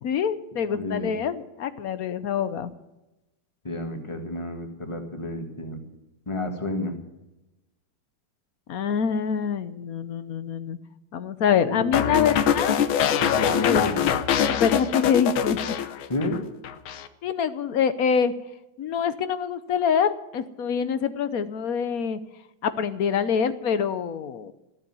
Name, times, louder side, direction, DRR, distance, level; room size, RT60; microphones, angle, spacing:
voice 1, 0.0-2.7 8.7-10.8 11.1-12.7 13.5-13.8 14.5-15.6 17.2-18.3 18.8-22.2 22.6-24.5, left 7 dB, 60° left, 13 dB, 1.1 m, -25 dB
voice 2, 0.7-1.1 3.6-5.8 6.3-7.0 11.6-12.3 13.2-14.0 16.1-16.5, left 2 dB, 15° left, 4 dB, 1.8 m, -30 dB
sound 1, 11.9-16.4 16.6-17.1, left 8 dB, 85° left, 1.7 m, -23 dB
15.0 x 8.7 x 9.6 m, 0.98 s
omnidirectional pair, 2.1 m